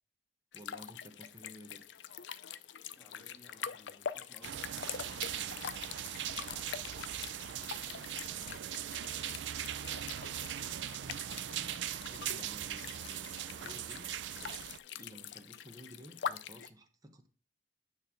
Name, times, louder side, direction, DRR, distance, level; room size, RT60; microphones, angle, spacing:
sound 1, 0.5-16.7, left 8 dB, 85° left, 0.5 m, -45 dB
voice 1, 0.5-1.8 12.1-14.1 14.9-17.3, equal, 20° right, 6 dB, 0.8 m, -53 dB
voice 2, 3.0-5.6 5.9-7.3 8.0-10.8, left 1 dB, 15° left, -2 dB, 2.3 m, -61 dB
sound 2, 4.4-14.8, right 11 dB, 80° right, 0.4 m, -40 dB
9.3 x 3.2 x 5.6 m, 0.38 s
head